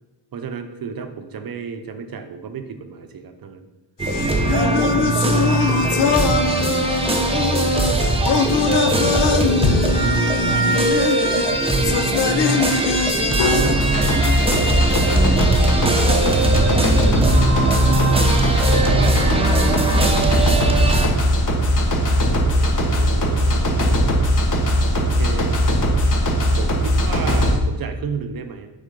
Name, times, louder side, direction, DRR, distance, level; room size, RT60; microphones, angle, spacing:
voice 1, 0.3-3.7 8.7-9.9 11.6-15.1 19.3-19.7 22.3-24.1 24.9-25.6 26.6-28.7, right 6 dB, 50° right, 7 dB, 0.6 m, -33 dB
sound 1, 4.0-13.7, left 6 dB, 70° left, 0.6 m, -22 dB
sound 2, 4.0-21.1, right 2 dB, 15° right, 0.6 m, -20 dB
voice 2, 4.5-7.9 10.3-11.2 15.9-18.4 18.9-21.2, right 4 dB, 90° right, 6 dB, 0.9 m, -31 dB
sound 3, 13.6-27.6, equal, 45° left, 1.4 m, -19 dB
6.6 x 4.1 x 5.1 m, 1.1 s
wide cardioid pair, 165°, 44 cm